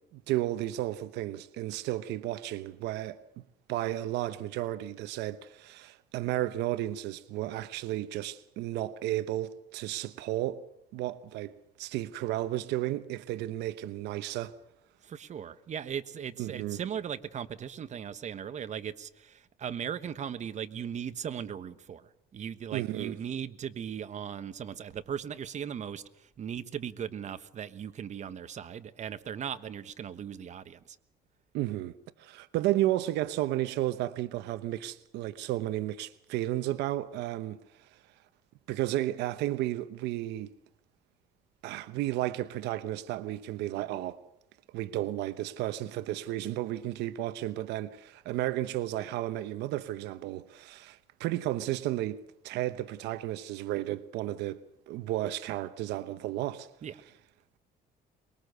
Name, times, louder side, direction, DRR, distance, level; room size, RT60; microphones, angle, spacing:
voice 1, 0.0-3.2 3.7-10.6 10.9-14.5 16.4-16.8 22.7-23.2 31.5-37.9 38.7-40.5 41.6-44.2 44.7-54.6 54.9-56.7, right 14 dB, 85° right, 0.9 m, -33 dB
voice 2, 15.0-22.0 22.3-26.0 26.4-30.8 56.8-56.9, right 8 dB, 45° right, 1.3 m, -38 dB
24.0 x 22.0 x 6.7 m
cardioid pair, 110°, 17 cm